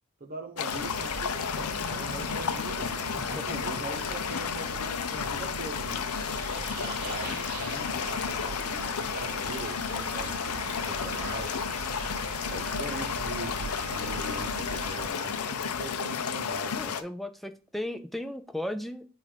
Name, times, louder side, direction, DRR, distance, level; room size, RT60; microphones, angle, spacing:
voice 1, 0.2-2.9 3.3-6.0 6.5-11.5 12.5-16.9, right 2 dB, 40° right, 1.0 m, -41 dB
sound 1, 0.6-17.0, left 7 dB, 90° left, 0.5 m, -32 dB
sound 2, 0.7-15.1, right 6 dB, 85° right, 0.4 m, -41 dB
voice 2, 3.2-3.6 11.9-12.2 16.8-19.0, left 1 dB, ahead, 0.4 m, -36 dB
7.3 x 2.6 x 5.0 m
head